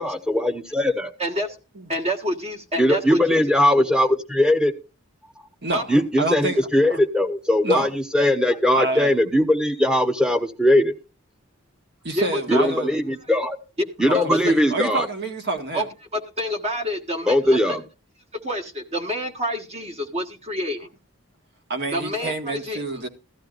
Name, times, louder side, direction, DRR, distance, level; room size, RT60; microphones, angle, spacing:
voice 1, 0.0-1.1 2.8-4.7 5.9-10.9 12.5-13.6 14.0-15.1 17.3-17.8, left 1 dB, 5° right, 1.1 m, -20 dB
voice 2, 1.2-1.6 1.9-3.2 5.7-5.8 12.1-12.6 14.1-14.5 15.7-15.9 16.1-17.8 18.4-20.9 21.9-23.0, equal, 30° right, 1.5 m, -27 dB
voice 3, 5.6-7.0 7.6-7.9 8.7-9.1 12.0-12.9 14.1-15.9 21.7-23.1, right 2 dB, 55° right, 1.7 m, -28 dB
15.5 x 12.5 x 2.6 m
head